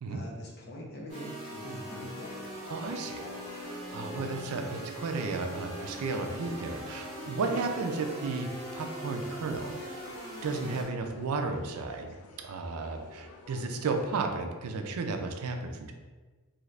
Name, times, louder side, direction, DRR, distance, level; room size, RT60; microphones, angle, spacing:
voice 1, 0.1-2.5, equal, 50° left, -2 dB, 0.7 m, -43 dB
sound 1, 1.1-10.8, right 1 dB, 15° left, 1.5 m, -41 dB
sound 2, 2.2-14.3, left 4 dB, 85° left, 0.3 m, -51 dB
voice 2, 2.7-3.3 3.5-10.0 10.4-15.9, right 3 dB, 80° right, 5 dB, 0.4 m, -34 dB
2.7 x 2.5 x 3.2 m, 1.3 s
head